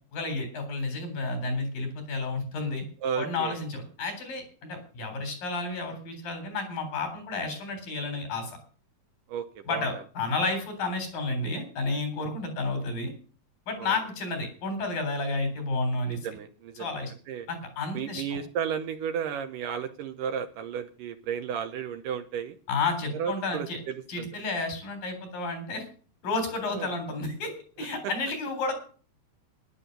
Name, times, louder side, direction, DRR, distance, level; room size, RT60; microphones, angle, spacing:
voice 1, 0.1-2.9 3.2-8.6 9.7-13.1 13.7-16.2 16.8-17.1 17.5-18.4 22.7-23.8 24.1-25.9 26.2-28.8, left 3 dB, 65° left, 7 dB, 5.3 m, -31 dB
voice 2, 3.0-3.6 9.3-9.9 13.8-14.0 16.1-16.9 17.3-17.5 17.9-22.6 23.1-24.3 26.7-26.9 28.0-28.1, right 8 dB, 70° right, 7 dB, 2.2 m, -33 dB
12.5 x 11.0 x 6.6 m, 0.41 s
omnidirectional pair, 4.4 m